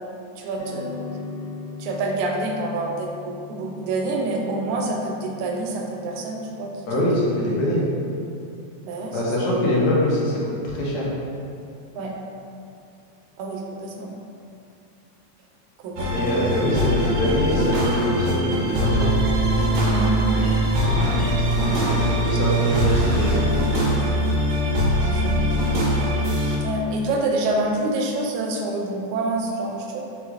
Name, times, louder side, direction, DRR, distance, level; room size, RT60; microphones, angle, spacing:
voice 1, 0.4-1.0 1.8-7.2 8.8-9.5 12.0-12.2 13.4-14.1 15.8-16.2 19.9-20.1 25.0-25.4 26.6-30.0, right 2 dB, 90° right, 0 dB, 2.0 m, -27 dB
sound 1, 0.6-9.1, left 4 dB, 60° left, 1.2 m, -41 dB
voice 2, 6.9-7.9 9.1-11.1 16.1-19.1 22.2-23.8, equal, 75° left, -5 dB, 1.9 m, -23 dB
sound 2, 16.0-26.6, equal, 70° right, 1.4 m, -22 dB
sound 3, 17.5-23.4, right 2 dB, 50° right, 0.9 m, -32 dB
4.6 x 3.8 x 2.4 m, 2.6 s
omnidirectional pair, 3.3 m